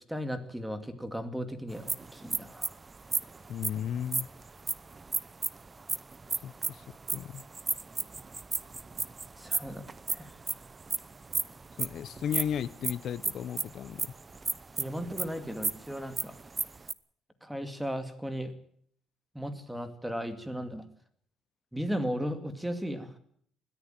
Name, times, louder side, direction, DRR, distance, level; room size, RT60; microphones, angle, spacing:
voice 1, 0.0-2.7 9.4-9.8 10.1-10.3 14.8-16.3 17.4-18.5 19.3-20.9 21.7-23.1, equal, 5° right, 2.4 m, -36 dB
sound 1, 1.7-16.9, right 4 dB, 25° right, 0.8 m, -34 dB
voice 2, 3.5-4.3 6.4-7.4 11.8-14.1, left 9 dB, 55° left, 0.9 m, -35 dB
21.0 x 13.5 x 9.1 m
cardioid pair, 120°, 0 cm